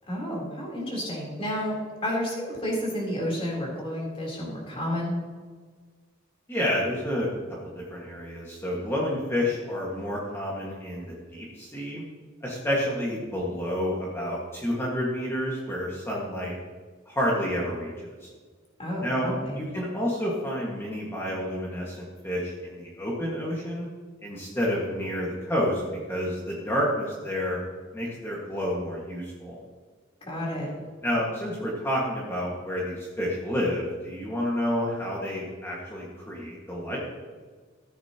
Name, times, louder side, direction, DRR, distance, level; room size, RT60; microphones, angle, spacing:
voice 1, 0.1-1.7 2.0-5.1 18.8-19.6 30.2-30.7, equal, 30° left, -3 dB, 3.6 m, -31 dB
voice 2, 6.5-7.3 7.6-12.0 12.4-16.5 17.1-18.3 19.0-19.3 19.6-23.9 24.2-25.8 26.1-27.6 27.9-29.6 31.0-37.0, equal, 10° left, -5 dB, 1.8 m, -29 dB
14.5 x 10.0 x 3.0 m, 1.5 s
head